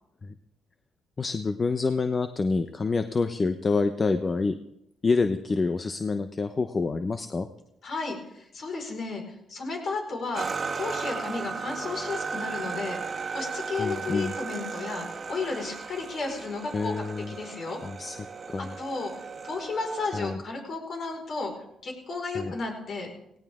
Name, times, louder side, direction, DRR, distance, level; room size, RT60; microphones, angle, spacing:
voice 1, 1.2-4.6 5.0-7.5 13.8-14.3 16.7-17.3 17.8-18.7 20.1-20.4 22.3-22.5, left 4 dB, 35° left, 8 dB, 0.8 m, -27 dB
voice 2, 7.8-10.5 10.7-17.8 18.6-19.1 19.4-21.5 21.8-23.1, left 3 dB, 55° left, 2 dB, 5.1 m, -33 dB
sound 1, 10.3-20.3, right 5 dB, 40° right, 1.6 m, -36 dB
18.0 x 17.5 x 3.7 m, 0.79 s
cardioid pair, 90°, 0 cm